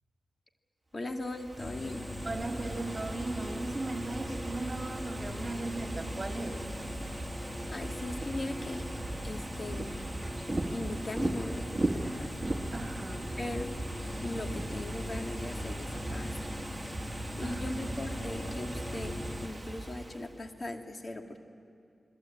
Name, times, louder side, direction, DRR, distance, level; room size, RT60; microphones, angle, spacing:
voice 1, 0.9-2.1 7.7-8.8 9.2-10.0 10.7-12.4 12.7-12.8 13.4-13.7 14.2-16.6 17.1-19.1 19.4-21.4, left 2 dB, 45° left, 4 dB, 2.3 m, -39 dB
Ocean / Fireworks, 1.1-20.4, right 2 dB, 20° right, 2.0 m, -39 dB
sound 1, 1.6-19.5, left 2 dB, 30° left, 1.8 m, -41 dB
voice 2, 2.2-6.6 12.7-13.3 17.4-18.0, right 2 dB, 40° right, 4 dB, 2.4 m, -37 dB
27.5 x 21.5 x 8.7 m, 2.4 s
cardioid pair, 45°, 0 cm